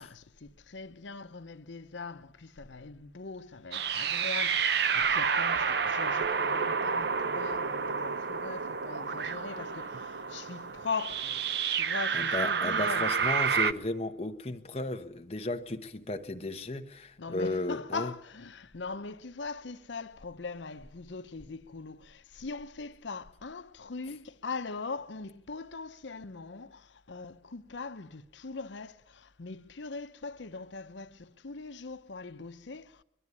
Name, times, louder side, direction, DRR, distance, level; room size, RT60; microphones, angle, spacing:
voice 1, 0.0-11.4 11.7-13.1 17.2-33.0, left 4 dB, 85° left, 0.8 m, -41 dB
sound 1, 3.7-13.7, right 6 dB, 65° right, 0.7 m, -29 dB
voice 2, 12.1-18.1, left 2 dB, 35° left, 1.1 m, -34 dB
21.5 x 12.5 x 9.7 m
head